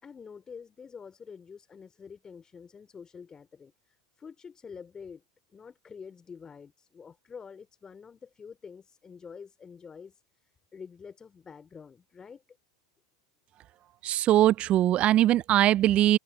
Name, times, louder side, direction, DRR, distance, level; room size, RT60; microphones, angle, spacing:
voice 1, 0.0-5.2 5.5-12.6, left 6 dB, 20° left, 3.6 m, -47 dB
voice 2, 14.0-16.2, right 13 dB, 40° right, 0.5 m, -21 dB
hypercardioid pair, 95°, 3 cm